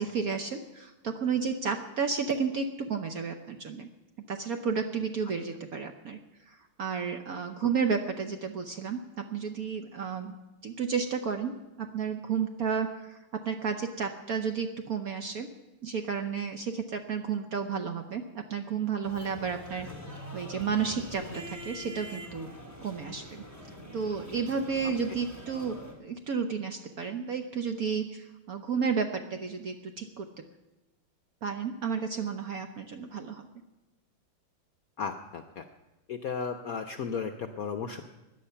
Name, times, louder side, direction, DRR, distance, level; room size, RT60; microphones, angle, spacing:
voice 1, 0.0-3.9 4.3-6.2 6.5-10.4 10.6-15.5 15.8-19.9 20.3-22.5 22.8-23.4 23.9-30.5 31.4-33.5, right 6 dB, 60° right, 6 dB, 1.0 m, -32 dB
sound 1, 19.0-25.9, equal, 5° right, 2.7 m, -44 dB
voice 2, 35.0-35.6 36.1-38.0, left 6 dB, 65° left, 7 dB, 0.9 m, -34 dB
17.0 x 10.5 x 5.6 m, 1.1 s
omnidirectional pair, 2.3 m